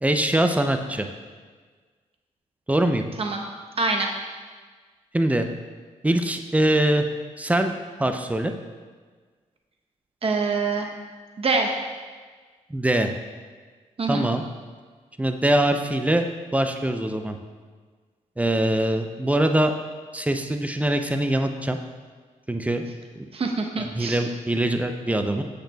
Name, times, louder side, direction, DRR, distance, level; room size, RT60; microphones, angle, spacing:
voice 1, 0.0-1.1 2.7-3.1 5.1-5.5 6.0-7.0 7.4-7.7 8.0-8.5 12.7-13.1 14.1-14.4 15.2-16.2 16.5-17.4 18.4-19.7 20.1-21.8 22.5-22.8 23.2-23.3 23.8-25.4, right 1 dB, 10° right, 6 dB, 0.5 m, -23 dB
voice 2, 3.8-4.1 10.2-10.9 11.4-11.7 14.0-14.3 23.3-24.2, right 3 dB, 45° right, 2 dB, 0.9 m, -25 dB
7.9 x 6.5 x 2.3 m, 1.5 s
cardioid pair, 75°, 13 cm